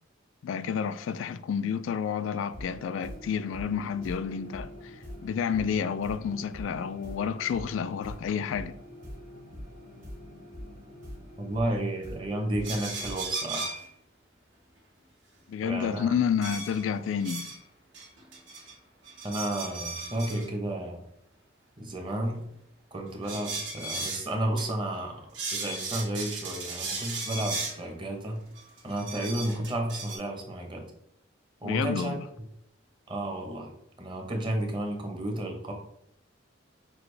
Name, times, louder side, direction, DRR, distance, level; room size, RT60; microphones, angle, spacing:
voice 1, 0.4-8.7 15.5-17.5 31.6-32.3, left 7 dB, 80° left, 0.3 m, -30 dB
sound 1, 2.5-13.1, equal, 45° right, 1.5 m, -44 dB
voice 2, 11.4-13.8 15.6-16.1 19.2-21.0 21.8-22.4 22.9-25.1 25.5-28.4 28.8-30.8 31.6-32.2 33.1-33.7 34.0-35.7, right 1 dB, 25° right, 0.9 m, -32 dB
sound 2, 12.6-13.9 16.4-17.6 17.9-18.7 19.0-20.5 23.2-24.3 24.6-24.7 24.9-25.0 25.3-27.8 28.6-30.2, right 3 dB, 65° right, 1.5 m, -36 dB
6.0 x 2.5 x 3.3 m
head